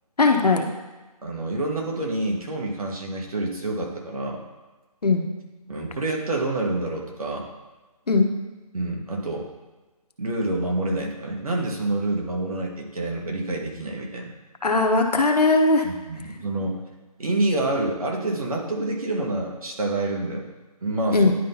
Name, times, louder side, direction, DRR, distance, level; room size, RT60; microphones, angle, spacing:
voice 1, 0.2-0.6 5.0-5.2 8.1-8.3 14.6-15.8 21.1-21.3, left 3 dB, 85° left, 3 dB, 1.0 m, -19 dB
voice 2, 1.2-4.4 5.7-7.5 8.7-9.5 10.2-14.3 15.8-16.8 17.2-20.5 20.8-21.3, right 2 dB, 65° right, -1 dB, 1.7 m, -27 dB
10.5 x 3.8 x 2.8 m, 1.2 s
figure-of-eight pair, 160°, 20 cm